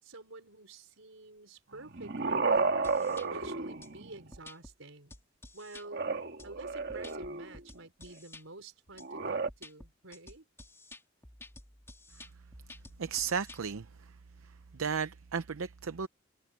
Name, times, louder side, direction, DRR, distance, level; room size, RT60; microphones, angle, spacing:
voice 1, 0.0-5.1 5.5-6.1 6.4-10.5, right 2 dB, 75° right, 5.5 m, -50 dB
sound 1, 1.7-4.3 5.8-7.6 9.0-9.5, right 4 dB, 55° right, 1.7 m, -32 dB
sound 2, 2.6-3.3 3.8-3.9 4.3-4.7 5.1-5.9 6.4-8.4 9.0-9.1 9.5-13.6, left 2 dB, 10° left, 3.1 m, -52 dB
voice 2, 13.0-14.2 14.4-16.1, right 6 dB, 90° right, 0.6 m, -35 dB
head